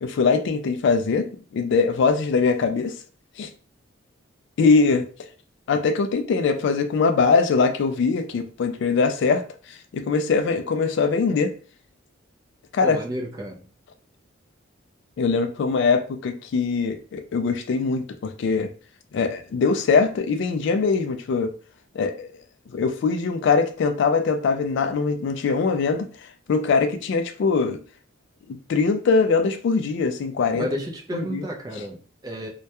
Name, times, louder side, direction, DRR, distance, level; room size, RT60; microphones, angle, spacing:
voice 1, 0.0-2.9 3.4-3.5 4.6-5.1 5.7-11.5 12.7-13.0 15.2-18.7 19.1-21.5 21.9-22.3 22.7-26.1 26.5-27.8 28.5-30.7 31.1-31.5, left 4 dB, 60° left, 0.3 m, -22 dB
voice 2, 12.8-13.7 30.6-32.5, equal, 20° right, 0.4 m, -31 dB
2.2 x 2.1 x 2.8 m
head